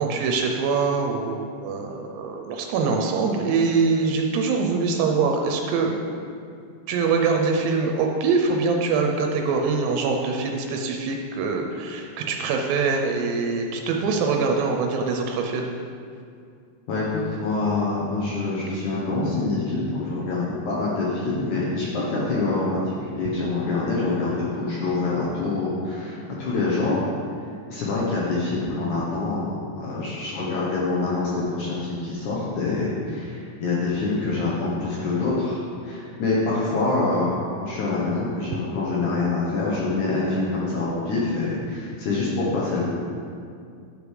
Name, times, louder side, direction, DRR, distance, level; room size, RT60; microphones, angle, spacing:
voice 1, 0.0-6.2 6.9-15.7, right 4 dB, 85° right, 2 dB, 2.4 m, -24 dB
voice 2, 16.9-27.1 27.7-37.3 37.6-42.9, left 3 dB, 65° left, -6 dB, 2.4 m, -25 dB
10.0 x 5.1 x 4.8 m, 2.3 s
omnidirectional pair, 4.1 m